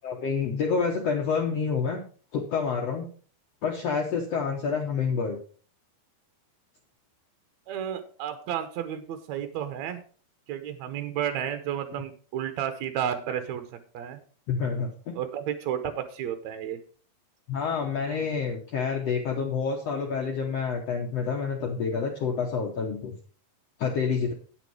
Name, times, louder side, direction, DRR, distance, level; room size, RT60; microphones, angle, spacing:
voice 1, 0.0-2.0 2.3-3.1 3.6-5.4 14.5-15.1 17.5-23.1 23.8-24.3, left 5 dB, 65° left, 0 dB, 1.6 m, -28 dB
voice 2, 7.7-10.0 10.5-13.6 13.9-14.2 15.2-16.8, right 9 dB, 80° right, 9 dB, 1.6 m, -32 dB
9.1 x 8.1 x 4.7 m, 0.42 s
omnidirectional pair, 4.3 m